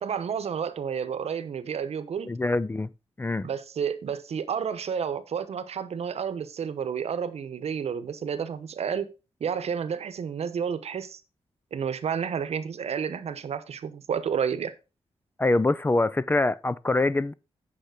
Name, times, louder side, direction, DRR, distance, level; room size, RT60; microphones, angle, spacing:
voice 1, 0.0-2.3 3.4-9.1 9.4-11.2 11.7-14.7, right 7 dB, 80° right, 0.9 m, -30 dB
voice 2, 2.3-2.9 3.2-3.5 15.4-17.3, left 2 dB, 20° left, 0.4 m, -24 dB
9.2 x 5.8 x 4.8 m
wide cardioid pair, 115°, 11 cm